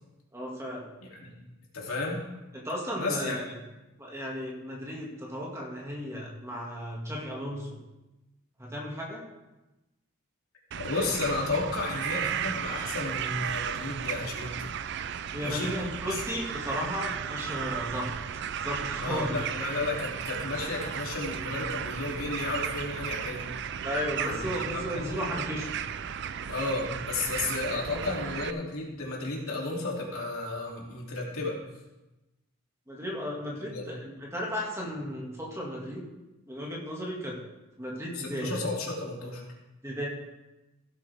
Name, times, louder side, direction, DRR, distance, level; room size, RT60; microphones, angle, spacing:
voice 1, 0.3-0.9 2.5-3.4 4.0-7.8 8.6-9.2 15.3-18.1 18.6-19.4 23.8-25.7 32.9-36.1 36.5-37.3 37.8-38.6 39.8-40.1, equal, 15° right, -3 dB, 2.0 m, -34 dB
voice 2, 1.0-1.3 1.7-2.2 3.0-3.4 10.8-14.7 15.4-15.7 19.0-23.5 24.2-24.9 26.5-31.5 33.6-33.8 38.1-39.4, left 2 dB, 85° left, -3 dB, 2.9 m, -33 dB
sound 1, 10.7-28.5, right 8 dB, 55° right, 0.4 m, -35 dB
16.0 x 8.5 x 3.5 m, 1.0 s
head